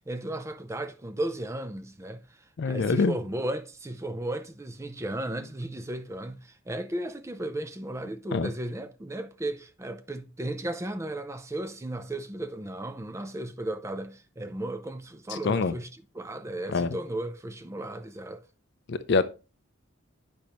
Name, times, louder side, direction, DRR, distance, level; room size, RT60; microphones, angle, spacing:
voice 1, 0.0-18.4, right 1 dB, 15° right, 0.4 m, -35 dB
voice 2, 2.6-3.1 8.3-8.5 15.4-15.7 16.7-16.9 18.9-19.2, left 4 dB, 55° left, 0.4 m, -24 dB
8.5 x 5.2 x 2.9 m
head